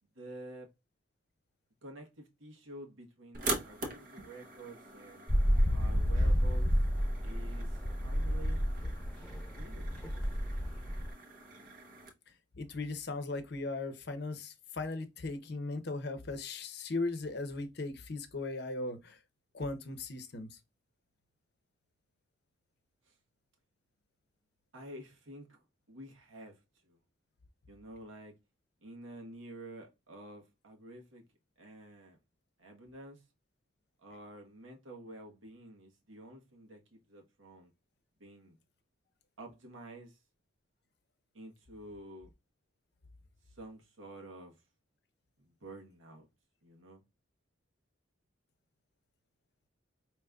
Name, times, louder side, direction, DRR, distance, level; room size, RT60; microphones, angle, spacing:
voice 1, 0.1-0.7 1.8-5.3 5.7-6.7 7.2-7.8 8.0-8.6 9.5-9.9 24.7-25.6 25.9-26.6 26.8-27.0 27.7-28.3 28.8-31.2 31.6-32.2 32.6-33.2 34.0-37.7 38.2-38.6 39.4-40.2 41.3-42.3 43.6-44.5 45.4-46.3 46.6-47.0, right 1 dB, 85° right, 1.2 m, -49 dB
sound 1, 3.3-12.1, right 3 dB, 45° right, 0.8 m, -43 dB
sound 2, 5.3-11.1, equal, 10° left, 1.2 m, -30 dB
voice 2, 12.6-19.2 19.5-20.6, left 3 dB, 55° left, 0.7 m, -38 dB
5.0 x 2.9 x 2.3 m
head